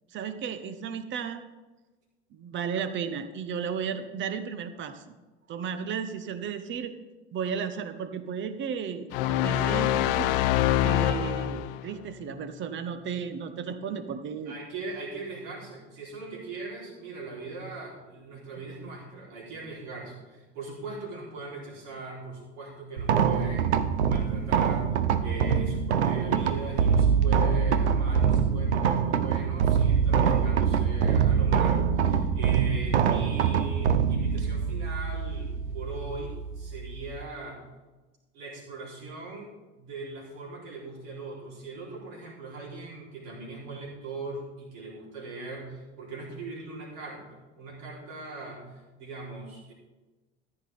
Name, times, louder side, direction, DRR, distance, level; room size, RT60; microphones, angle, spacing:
voice 1, 0.1-1.4 2.3-5.1 5.5-7.0 7.3-10.4 10.8-14.6, right 7 dB, 35° right, 11 dB, 0.9 m, -34 dB
sound 1, 9.1-11.9, left 13 dB, 55° left, 0.5 m, -25 dB
voice 2, 14.5-23.8 24.0-24.9 25.2-37.6 38.3-49.7, right 3 dB, 55° right, -3 dB, 3.6 m, -40 dB
sound 2, 23.0-37.2, right 7 dB, 70° right, 0.7 m, -24 dB
14.0 x 9.8 x 3.5 m, 1.2 s
figure-of-eight pair, 70°, 34 cm